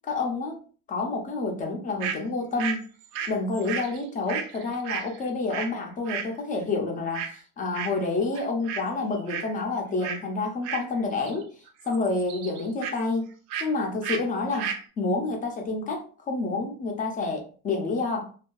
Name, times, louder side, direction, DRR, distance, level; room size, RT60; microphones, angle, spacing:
voice 1, 0.1-0.6 0.9-2.8 3.3-11.5 11.8-13.3 13.6-14.7 15.0-18.3, left 3 dB, 25° left, 2 dB, 0.4 m, -28 dB
sound 1, 2.0-2.2 2.6-5.8 6.1-6.3 7.1-7.4 7.7-8.1 8.3-8.9 9.1-9.5 10.0-10.2 10.6-11.4 11.7-13.0 13.5-13.7 14.0-14.2 14.5-14.8, right 7 dB, 85° right, 0.5 m, -33 dB
2.5 x 2.3 x 2.2 m, 0.40 s
cardioid pair, 160°, 34 cm